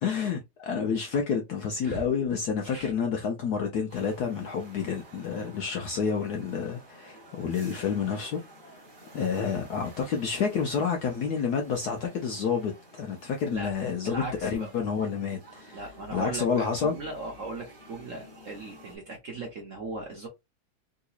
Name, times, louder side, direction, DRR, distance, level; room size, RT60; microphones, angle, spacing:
voice 1, 0.0-8.4 8.7-8.8 9.1-15.8 16.1-17.0, left 6 dB, 80° left, 0.8 m, -29 dB
sound 1, 3.9-19.0, right 1 dB, 30° right, 1.2 m, -52 dB
voice 2, 14.0-14.7 15.7-20.3, right 2 dB, 55° right, 0.9 m, -37 dB
3.9 x 2.8 x 2.3 m
omnidirectional pair, 2.4 m